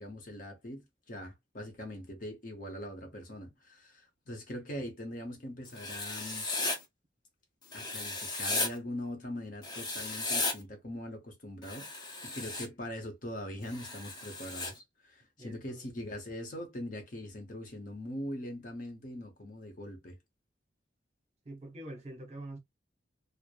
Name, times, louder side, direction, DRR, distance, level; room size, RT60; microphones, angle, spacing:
voice 1, 0.0-6.5 7.7-20.2, left 1 dB, 45° left, 0.8 m, -42 dB
Writing, 5.7-6.8 7.7-8.7 9.6-10.5 11.6-12.7 13.7-14.7, left 2 dB, 25° left, 0.7 m, -35 dB
voice 2, 15.4-15.9 21.4-22.6, right 1 dB, 35° right, 0.8 m, -45 dB
3.1 x 2.0 x 2.3 m
head